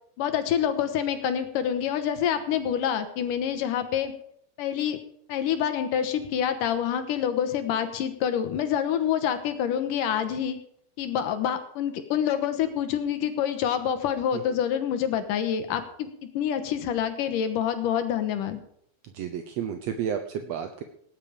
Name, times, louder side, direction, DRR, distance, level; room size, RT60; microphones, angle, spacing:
voice 1, 0.2-4.1 4.6-5.0 5.3-10.6 11.0-16.1 16.3-18.6, left 9 dB, 75° left, 9 dB, 2.6 m, -27 dB
voice 2, 19.1-20.8, right 8 dB, 70° right, 7 dB, 1.5 m, -31 dB
18.0 x 10.0 x 5.1 m, 0.67 s
omnidirectional pair, 4.0 m